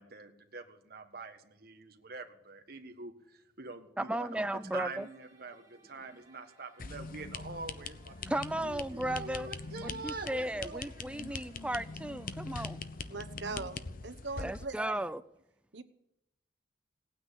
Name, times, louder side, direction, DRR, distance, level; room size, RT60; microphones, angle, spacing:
voice 1, 0.0-4.4 4.7-8.3 8.6-11.3, right 3 dB, 60° right, 1.5 m, -45 dB
voice 2, 4.0-5.1 8.3-9.5 9.8-12.8 14.4-15.2, right 1 dB, 5° right, 0.5 m, -35 dB
sound 1, 4.0-14.0, right 4 dB, 25° right, 3.1 m, -64 dB
sound 2, 6.8-14.7, left 4 dB, 50° left, 0.8 m, -42 dB
voice 3, 13.1-15.0 15.7-15.8, right 3 dB, 80° right, 1.2 m, -41 dB
18.0 x 9.3 x 8.2 m
head